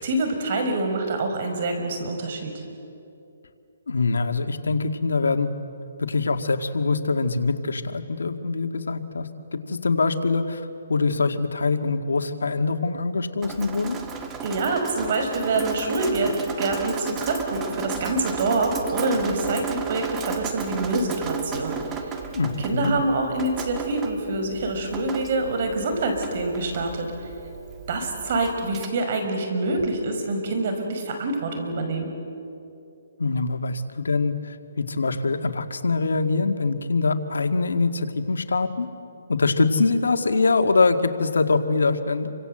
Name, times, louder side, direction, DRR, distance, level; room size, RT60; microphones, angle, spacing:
voice 1, 0.0-2.5 14.4-22.2 22.6-27.1 27.9-32.1, right 2 dB, 45° right, 5 dB, 5.7 m, -26 dB
voice 2, 3.9-5.5 6.0-14.0 22.3-22.9 33.2-38.9 39.3-42.3, left 3 dB, 90° left, 7 dB, 2.0 m, -24 dB
Drip, 13.4-28.9, right 6 dB, 15° right, 1.7 m, -34 dB
29.0 x 25.0 x 7.9 m, 2.7 s
hypercardioid pair, 160°, 0 cm